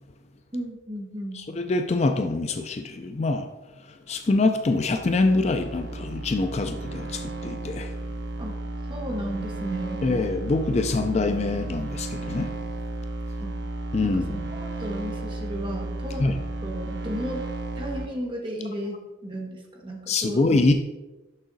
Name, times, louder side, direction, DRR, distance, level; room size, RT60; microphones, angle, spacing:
voice 1, 0.5-1.4 8.4-8.6 8.9-10.0 13.4-13.6 14.0-16.3 16.6-17.5 17.8-20.4, equal, 25° right, 0 dB, 1.2 m, -34 dB
voice 2, 1.7-3.5 4.1-7.9 10.0-12.5 13.9-14.4 16.2-16.3 20.1-20.7, left 3 dB, 35° left, 7 dB, 0.4 m, -24 dB
sound 1, 4.6-18.1, right 2 dB, 65° right, 0.9 m, -33 dB
6.4 x 5.9 x 3.9 m, 1.1 s
head